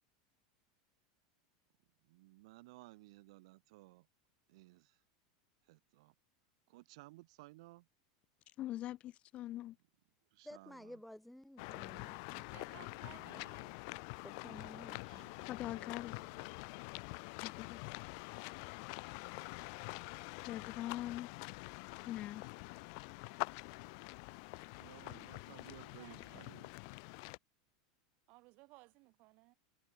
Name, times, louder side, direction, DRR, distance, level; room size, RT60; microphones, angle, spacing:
voice 1, 2.1-4.1 4.5-5.0 5.7-6.1 6.7-7.9 10.3-11.0 13.2-13.5 14.9-16.5 24.8-26.7, right 21 dB, 70° right, 2.4 m, -59 dB
voice 2, 8.6-9.7 15.5-16.1 17.4-17.8 20.5-21.3 22.1-22.4, left 14 dB, 35° left, 1.4 m, -42 dB
voice 3, 10.4-12.5 14.2-15.3, left 1 dB, ahead, 4.8 m, -53 dB
sound 1, 11.6-27.4, left 36 dB, 55° left, 0.4 m, -46 dB
voice 4, 12.5-13.7 25.6-26.6 28.3-29.5, right 25 dB, 50° right, 3.0 m, -60 dB
supercardioid pair, 145°, 3 cm